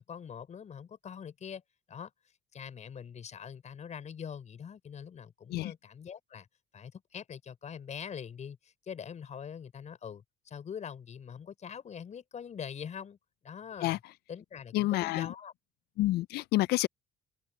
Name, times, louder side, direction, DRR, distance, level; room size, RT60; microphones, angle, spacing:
voice 1, 0.0-1.6 1.9-2.1 2.5-6.5 6.7-13.2 13.4-14.0 14.3-15.5, left 7 dB, 45° left, 5.8 m, -43 dB
voice 2, 14.7-15.3 16.0-16.9, left 17 dB, 75° left, 0.4 m, -28 dB
cardioid pair, 110°, 17 cm